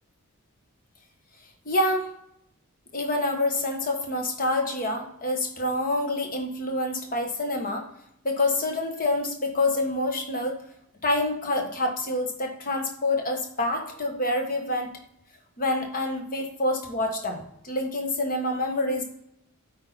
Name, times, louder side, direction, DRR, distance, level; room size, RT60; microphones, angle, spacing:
voice 1, 1.6-2.1 2.9-7.8 8.2-10.6 11.0-14.9 15.6-19.0, left 2 dB, 40° left, 3 dB, 1.3 m, -27 dB
8.6 x 4.3 x 4.2 m, 0.75 s
head